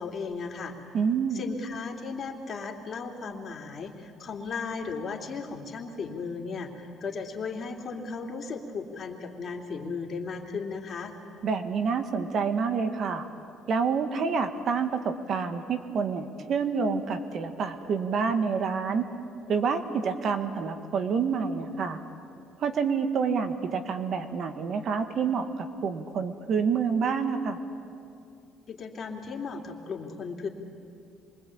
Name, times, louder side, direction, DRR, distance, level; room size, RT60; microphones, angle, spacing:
voice 1, 0.0-0.8 1.3-11.1 28.7-30.5, left 4 dB, 45° left, 2 dB, 3.2 m, -36 dB
voice 2, 0.9-1.4 11.4-13.3 13.7-19.1 19.5-22.0 22.6-27.6, right 5 dB, 55° right, 8 dB, 1.9 m, -28 dB
27.0 x 23.5 x 8.7 m, 2.5 s
cardioid pair, 90°, 0 cm